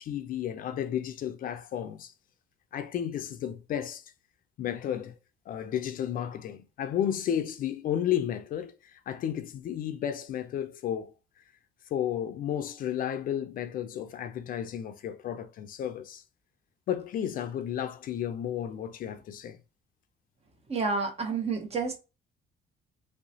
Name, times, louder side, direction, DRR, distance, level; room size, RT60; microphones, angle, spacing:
voice 1, 0.0-2.1 2.7-4.0 4.6-5.2 5.5-11.1 11.9-16.2 16.9-19.6, left 10 dB, 55° left, 0.5 m, -32 dB
voice 2, 20.7-22.0, right 4 dB, 35° right, 1.1 m, -29 dB
3.3 x 2.9 x 2.7 m
cardioid pair, 110°, 17 cm